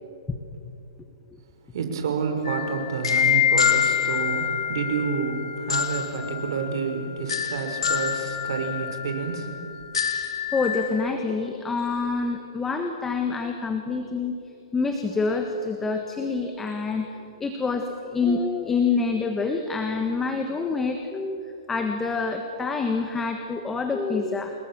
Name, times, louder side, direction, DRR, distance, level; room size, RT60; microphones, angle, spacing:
voice 1, 1.7-9.6, right 5 dB, 60° right, 5 dB, 5.4 m, -29 dB
sound 1, 2.5-10.9, left 8 dB, 80° left, 3.3 m, -26 dB
voice 2, 10.5-14.3 14.7-24.5, left 4 dB, 10° left, 5 dB, 1.5 m, -27 dB
28.0 x 21.5 x 7.5 m, 2.7 s
hypercardioid pair, 150°, 3 cm